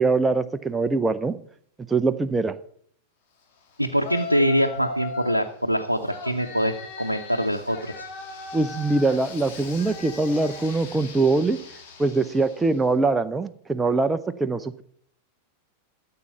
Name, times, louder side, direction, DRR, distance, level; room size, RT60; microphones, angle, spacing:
voice 1, 0.0-1.3 1.9-2.5 8.5-11.6 12.0-14.8, right 3 dB, 10° right, 9 dB, 0.6 m, -23 dB
voice 2, 3.8-8.1, equal, 90° right, 4 dB, 0.7 m, -24 dB
Yell, 4.0-5.5 6.1-12.8, left 4 dB, 50° left, 2.4 m, -38 dB
13.5 x 7.6 x 5.8 m, 0.62 s
figure-of-eight pair, 90°, 0 cm